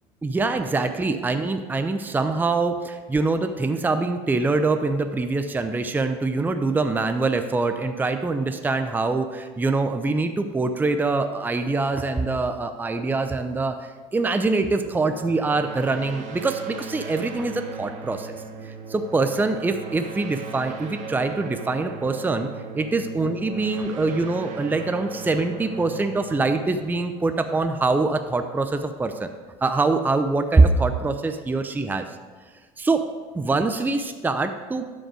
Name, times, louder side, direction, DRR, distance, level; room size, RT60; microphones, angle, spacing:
voice 1, 0.2-18.3 18.6-22.5 22.7-29.3 29.6-32.0 32.8-33.0 33.3-34.9, right 3 dB, 10° right, 7 dB, 0.6 m, -24 dB
sound 1, 14.8-28.2, right 5 dB, 45° right, 1.6 m, -38 dB
12.5 x 5.4 x 5.0 m, 1.4 s
supercardioid pair, 95°, 16 cm